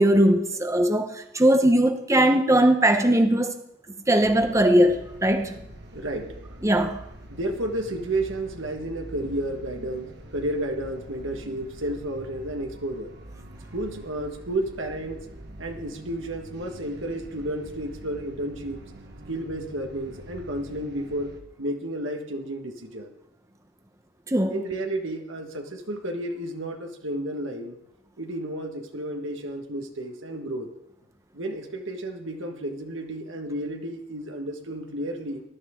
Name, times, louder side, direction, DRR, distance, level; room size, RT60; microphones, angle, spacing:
voice 1, 0.0-3.5 4.1-5.5 6.6-7.0 24.3-24.6, right 1 dB, 15° right, 0.9 m, -20 dB
sound 1, 4.2-21.4, right 1 dB, 60° right, 1.6 m, -44 dB
voice 2, 5.9-6.3 7.3-13.1 13.7-15.3 15.6-18.8 19.3-23.1 24.5-27.8 28.2-30.7 31.3-35.4, right 1 dB, 80° right, 1.5 m, -32 dB
19.0 x 12.0 x 3.7 m
head